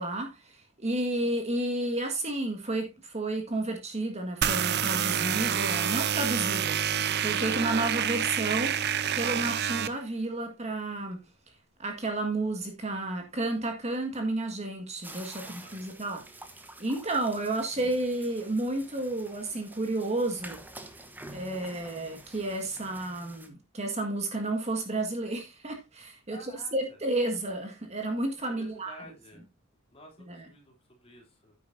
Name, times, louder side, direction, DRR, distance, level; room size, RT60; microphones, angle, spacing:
voice 1, 0.0-6.8 7.2-8.8 9.2-11.2 11.8-16.2 16.8-20.6 21.3-29.0 30.3-30.5, right 2 dB, 30° right, 1.7 m, -31 dB
sound 1, 4.4-9.9, right 8 dB, 50° right, 0.6 m, -28 dB
sound 2, 15.0-23.5, right 1 dB, 10° right, 1.0 m, -48 dB
voice 2, 15.4-15.8 26.3-27.0 28.5-29.4 29.9-31.5, left 1 dB, 30° left, 3.0 m, -51 dB
9.9 x 9.3 x 2.6 m
head